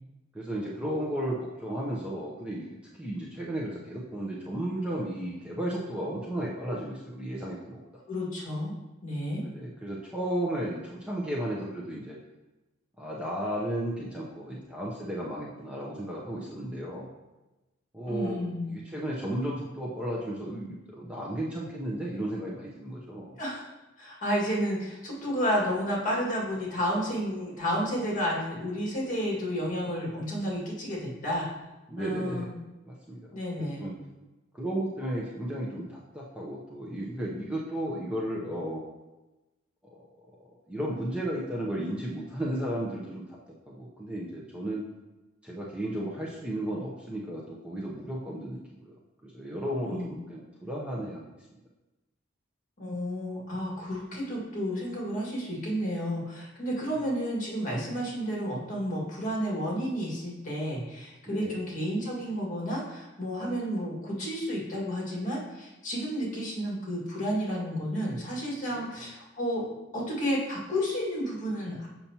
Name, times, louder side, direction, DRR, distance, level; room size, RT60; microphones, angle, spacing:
voice 1, 0.3-7.8 9.4-12.2 13.0-17.1 17.9-23.4 31.9-32.5 32.9-33.9 34.5-38.8 40.0-40.1 40.4-43.4 43.7-44.9 45.4-49.0 49.2-51.6 56.8-57.0 61.3-61.6 68.7-69.0, right 1 dB, 5° right, -5 dB, 0.7 m, -34 dB
voice 2, 8.1-8.7 9.0-9.4 18.1-18.7 23.4-23.7 24.0-31.5 32.0-32.5 33.3-33.9 49.9-50.1 52.8-69.6 69.9-71.9, equal, 40° left, -4 dB, 2.0 m, -31 dB
6.9 x 5.7 x 2.9 m, 1.1 s
head